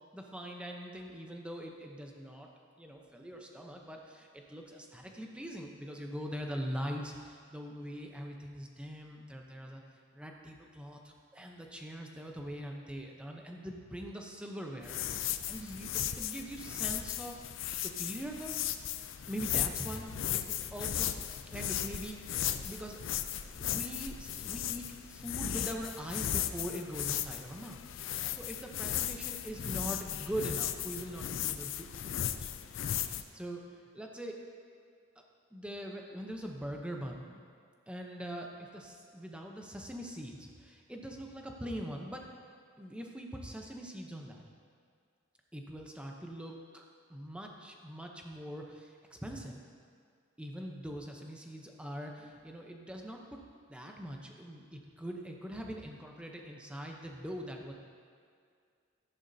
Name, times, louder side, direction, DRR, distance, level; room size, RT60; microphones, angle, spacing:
voice 1, 0.1-2.5 2.8-9.8 10.1-18.8 19.3-23.1 23.6-32.5 33.0-34.4 35.5-37.5 37.9-42.3 42.8-44.4 45.5-49.6 50.4-53.4 53.7-57.7, equal, 5° right, 1 dB, 0.8 m, -42 dB
sound 1, 14.8-33.2, left 10 dB, 70° left, 0.4 m, -36 dB
13.5 x 10.5 x 2.8 m, 2.2 s
head